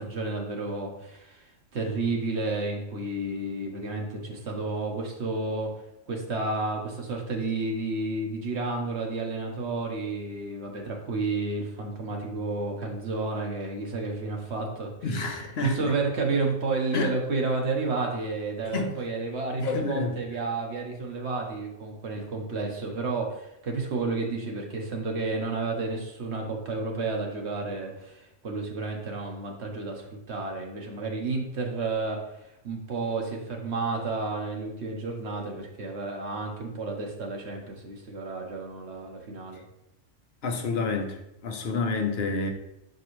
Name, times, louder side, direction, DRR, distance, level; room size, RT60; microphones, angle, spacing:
voice 1, 0.0-5.7 6.1-14.9 15.6-39.6, right 3 dB, 65° right, 1 dB, 1.2 m, -31 dB
voice 2, 15.0-15.9 16.9-17.1 18.7-18.9 19.6-20.2 40.4-42.5, left 3 dB, 60° left, 5 dB, 1.0 m, -29 dB
6.0 x 5.2 x 3.0 m, 0.86 s
omnidirectional pair, 1.2 m